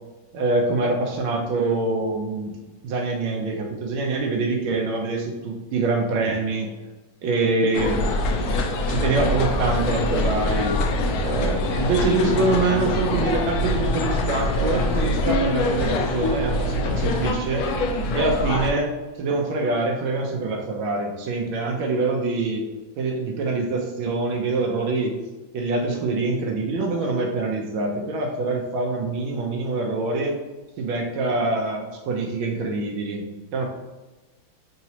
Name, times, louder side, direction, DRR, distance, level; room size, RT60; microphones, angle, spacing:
voice 1, 0.3-2.6 2.8-6.7 7.2-8.1 8.9-10.7 11.2-17.6 18.1-18.9 19.2-22.6 23.0-25.1 25.5-30.4 30.8-33.2 33.5-33.6, right 3 dB, 80° right, 1 dB, 1.4 m, -25 dB
sound 1, 7.7-18.7, left 1 dB, 85° left, 0.8 m, -24 dB
3.9 x 2.9 x 2.7 m, 1.2 s
omnidirectional pair, 2.2 m